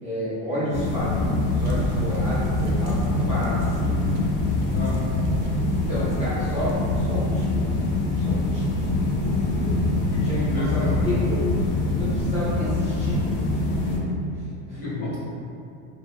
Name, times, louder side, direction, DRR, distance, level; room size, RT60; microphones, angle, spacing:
voice 1, 0.0-4.1 5.9-7.9 8.2-9.9 10.2-11.5 11.9-13.5 13.8-14.1 14.7-14.8, left 1 dB, 15° right, -12 dB, 0.6 m, -31 dB
sound 1, 0.7-14.0, left 2 dB, 55° left, 0.6 m, -24 dB
sound 2, 1.6-9.2, right 1 dB, 70° right, 0.6 m, -35 dB
voice 2, 10.1-10.9 12.3-12.4 14.8-15.2, left 2 dB, 35° left, -8 dB, 1.0 m, -32 dB
3.2 x 2.1 x 2.4 m, 2.6 s
supercardioid pair, 130°, 41 cm